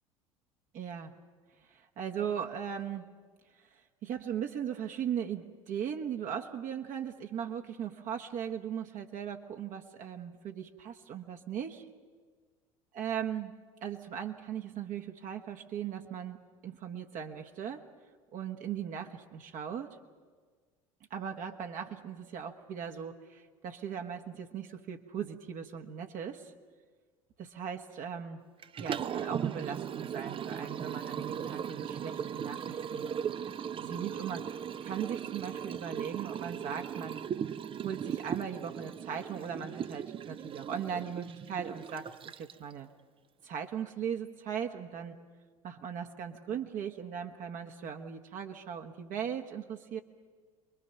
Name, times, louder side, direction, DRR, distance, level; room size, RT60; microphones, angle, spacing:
voice 1, 0.7-1.1 1.7-3.1 3.5-11.9 12.9-13.5 13.8-16.4 16.6-17.8 18.3-20.0 21.1-26.5 27.4-28.4 28.8-33.1 33.8-34.4 34.8-37.2 37.8-42.9 43.4-45.2 45.6-50.0, right 8 dB, 45° right, 4 dB, 1.4 m, -38 dB
Liquid, 28.6-42.7, right 8 dB, 30° right, 0.7 m, -38 dB
28.5 x 22.0 x 5.8 m, 1.5 s
figure-of-eight pair, 65°, 18 cm